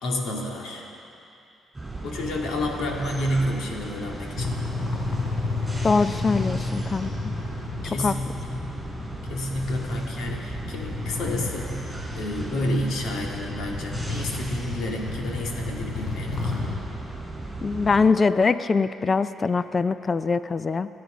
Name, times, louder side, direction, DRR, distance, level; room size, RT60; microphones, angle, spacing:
voice 1, 0.0-0.9 2.0-4.6 7.8-8.7 9.3-16.5, left 1 dB, 80° left, -1 dB, 2.6 m, -30 dB
sound 1, 1.7-18.1, right 2 dB, 15° right, 4.8 m, -36 dB
sound 2, 4.4-16.8, left 3 dB, 65° left, 4.2 m, -32 dB
voice 2, 5.8-7.1 8.0-8.1 17.6-20.9, left 4 dB, 35° left, 13 dB, 0.5 m, -22 dB
28.0 x 9.5 x 5.2 m, 2.7 s
cardioid pair, 90°, 0 cm